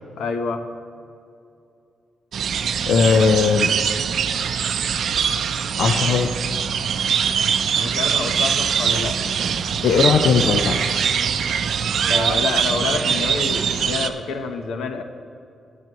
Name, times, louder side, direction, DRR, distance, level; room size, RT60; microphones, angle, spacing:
voice 1, 0.2-0.7 7.8-9.8 12.1-15.0, left 4 dB, 85° left, 7 dB, 0.9 m, -28 dB
sound 1, 2.3-14.1, right 7 dB, 60° right, 0.5 m, -22 dB
voice 2, 2.9-3.7 5.8-6.3 9.8-11.0, left 5 dB, 65° left, 5 dB, 0.6 m, -18 dB
21.5 x 8.3 x 3.1 m, 2.6 s
cardioid pair, 135°, 0 cm